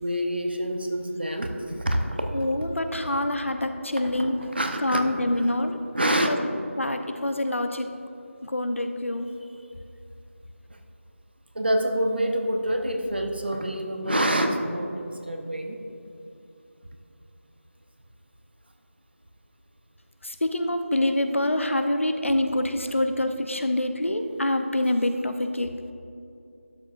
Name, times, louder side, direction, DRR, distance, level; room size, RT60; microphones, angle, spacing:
voice 1, 0.0-2.0 4.2-5.4 5.9-6.3 11.5-15.8, equal, 50° right, 4 dB, 0.9 m, -27 dB
voice 2, 2.3-4.4 4.8-5.8 6.3-6.4 6.8-7.9 8.4-9.3 20.2-25.7, left 1 dB, 65° left, 7 dB, 0.7 m, -26 dB
12.0 x 7.5 x 2.6 m, 2.7 s
figure-of-eight pair, 175°, 7 cm